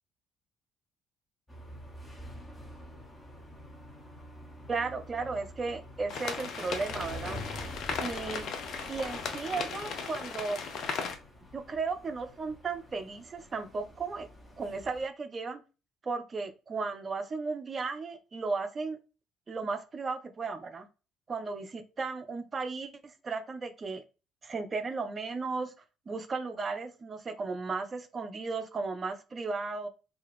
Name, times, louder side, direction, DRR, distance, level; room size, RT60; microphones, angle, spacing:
sound 1, 1.5-15.1, left 1 dB, 15° left, 0.9 m, -47 dB
voice 1, 4.7-7.4 8.0-8.5 8.9-10.6 11.5-14.3 14.6-15.6 16.0-19.0 19.5-20.9 21.3-24.0 24.4-25.7 26.1-29.9, right 4 dB, 35° right, 8 dB, 0.5 m, -35 dB
sound 2, 6.1-11.2, left 5 dB, 55° left, 0.5 m, -37 dB
2.6 x 2.2 x 3.5 m, 0.33 s
figure-of-eight pair, 50°, 0 cm